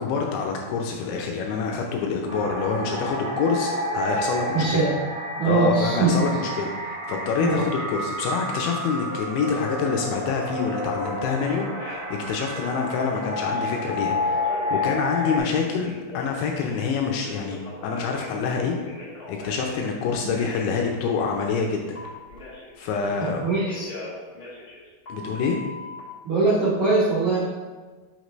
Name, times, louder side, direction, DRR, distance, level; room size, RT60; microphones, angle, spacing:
voice 1, 0.0-4.9 5.4-14.4 14.7-17.6 17.8-18.8 19.3-22.0 22.8-23.4 25.1-25.6, left 5 dB, 80° left, 1 dB, 2.7 m, -26 dB
sound 1, 2.3-15.4, left 1 dB, 55° right, 2.5 m, -30 dB
voice 2, 4.5-4.9 5.4-6.2 7.4-7.7 20.2-20.3 23.2-23.9 26.2-27.4, right 3 dB, 70° right, -10 dB, 1.7 m, -22 dB
Telephone, 10.9-11.1 11.5-12.1 12.5-13.8 14.4-16.9 17.2-19.9 20.3-20.7 21.9-23.3 23.7-26.0, left 2 dB, 60° left, 1.3 m, -40 dB
6.5 x 6.5 x 3.1 m, 1.4 s
omnidirectional pair, 5.6 m